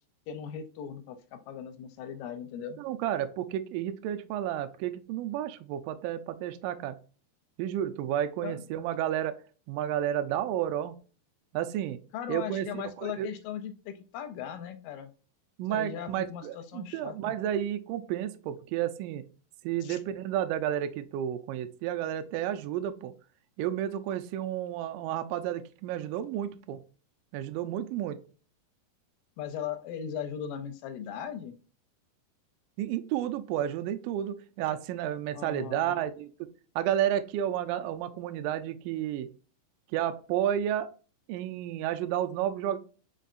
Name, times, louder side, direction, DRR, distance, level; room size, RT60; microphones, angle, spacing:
voice 1, 0.3-2.8 8.4-8.7 12.1-15.1 15.7-17.4 19.8-20.0 29.4-31.6 35.3-36.0, left 8 dB, 80° left, 9 dB, 2.1 m, -38 dB
voice 2, 2.8-7.0 7.6-9.4 9.7-11.0 11.5-12.0 12.3-13.3 15.6-19.2 19.6-23.1 23.6-26.8 27.3-28.2 32.8-36.3 36.8-39.3 39.9-40.9 41.3-42.8, right 11 dB, 80° right, 9 dB, 2.0 m, -31 dB
5.2 x 4.0 x 2.5 m, 0.37 s
omnidirectional pair, 4.2 m